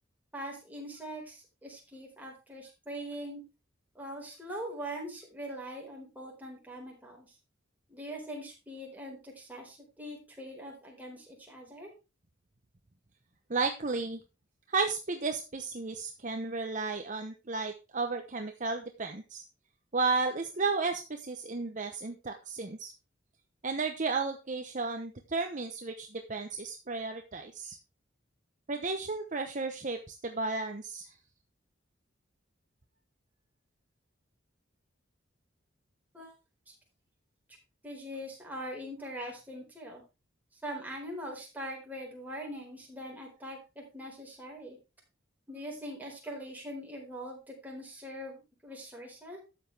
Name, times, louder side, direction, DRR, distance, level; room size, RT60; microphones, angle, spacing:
voice 1, 0.3-3.4 3.9-7.3 7.9-11.9 36.1-36.3 36.7-36.8 37.8-40.0 40.6-44.8 45.5-49.4, equal, 10° right, -2 dB, 4.2 m, -42 dB
voice 2, 13.5-14.2 14.7-19.4 19.9-22.9 23.6-27.8 28.7-31.1, right 4 dB, 40° right, 5 dB, 0.9 m, -33 dB
12.5 x 8.1 x 3.4 m, 0.28 s
head